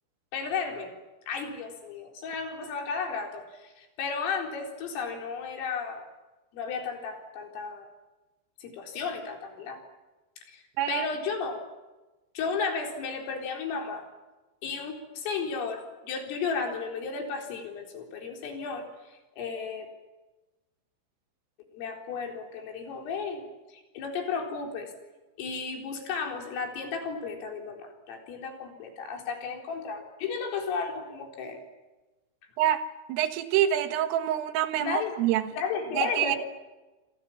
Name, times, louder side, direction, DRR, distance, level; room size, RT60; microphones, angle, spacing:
voice 1, 0.3-0.9 1.3-6.0 6.5-7.9 8.6-9.8 10.5-11.6 12.3-14.1 14.6-18.9 19.4-19.9 21.7-23.5 23.9-24.9 25.4-31.6 34.8-35.2 35.6-36.4, left 5 dB, 85° left, 6.8 m, -33 dB
voice 2, 32.6-35.4 35.9-36.4, right 11 dB, 85° right, 4.2 m, -26 dB
27.0 x 26.5 x 7.4 m
omnidirectional pair, 5.8 m